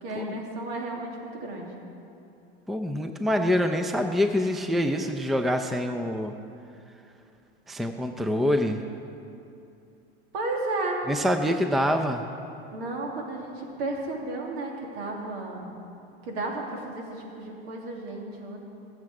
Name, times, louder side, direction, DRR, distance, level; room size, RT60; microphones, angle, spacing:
voice 1, 0.0-1.7 10.3-11.0 12.7-15.7 16.2-18.6, right 2 dB, 70° right, 0 dB, 2.7 m, -33 dB
voice 2, 2.7-6.3 7.7-8.8 11.1-12.2, left 1 dB, ahead, 6 dB, 0.5 m, -25 dB
20.0 x 7.9 x 4.8 m, 2.7 s
hypercardioid pair, 105°, 31 cm